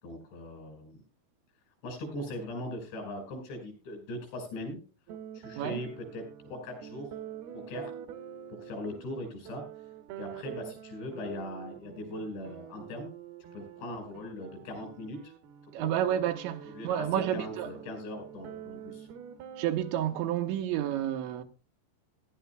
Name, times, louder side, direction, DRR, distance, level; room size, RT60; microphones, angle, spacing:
voice 1, 0.0-1.0 1.8-4.8 5.4-7.1 7.5-7.9 8.5-9.7 10.2-13.1 13.5-15.3 15.8-15.9 16.7-19.1, left 1 dB, 75° left, 7.0 m, -40 dB
sound 1, 5.1-20.2, right 9 dB, 70° right, 2.6 m, -46 dB
voice 2, 15.7-17.7 19.6-21.4, right 10 dB, 90° right, 3.4 m, -30 dB
19.0 x 11.5 x 2.2 m
omnidirectional pair, 5.2 m